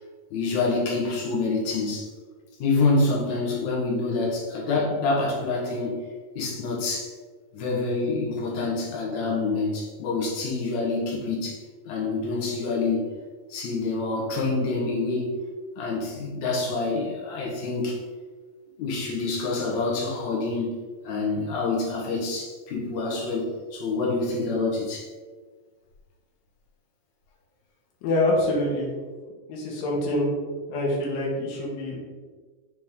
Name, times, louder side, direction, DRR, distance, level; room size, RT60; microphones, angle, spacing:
voice 1, 0.3-2.1 2.6-6.0 6.4-7.1 7.5-11.6 11.9-13.0 13.5-15.3 15.8-18.0 18.8-20.8 21.0-25.1, left 3 dB, 60° left, -3 dB, 2.4 m, -27 dB
voice 2, 28.0-28.9 29.5-30.3 30.7-32.0, left 1 dB, 75° left, -3 dB, 3.0 m, -25 dB
9.2 x 3.4 x 3.6 m, 1.5 s
omnidirectional pair, 4.1 m